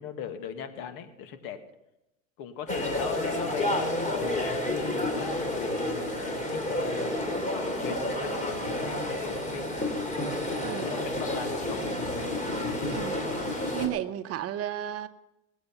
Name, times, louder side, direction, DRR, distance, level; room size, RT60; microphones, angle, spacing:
voice 1, 0.0-1.6 2.4-6.1 6.5-7.2 7.6-9.7 10.8-11.9, left 7 dB, 60° left, 8 dB, 1.8 m, -38 dB
sound 1, 2.7-13.9, left 1 dB, 20° left, 3.5 m, -30 dB
voice 2, 12.9-13.2 13.8-15.1, right 11 dB, 40° right, 11 dB, 0.9 m, -33 dB
20.5 x 8.1 x 5.8 m, 0.92 s
hypercardioid pair, 95°, 38 cm